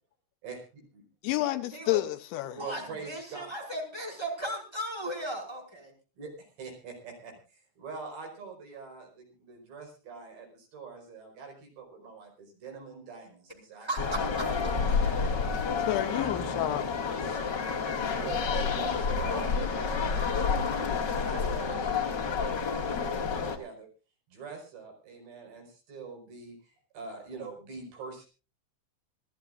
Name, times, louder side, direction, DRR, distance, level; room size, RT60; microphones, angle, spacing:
voice 1, 0.4-1.0 2.5-3.6 6.2-14.4 14.7-15.1 17.1-17.4 18.0-23.9 24.3-28.3, right 5 dB, 65° right, 6.9 m, -44 dB
voice 2, 1.2-2.6 15.9-16.9, left 16 dB, 80° left, 3.1 m, -29 dB
voice 3, 2.6-5.9 13.8-14.5 15.0-15.1, right 1 dB, 5° right, 4.9 m, -36 dB
sound 1, 14.0-23.6, left 5 dB, 40° left, 1.5 m, -29 dB
26.0 x 14.0 x 2.5 m
omnidirectional pair, 5.4 m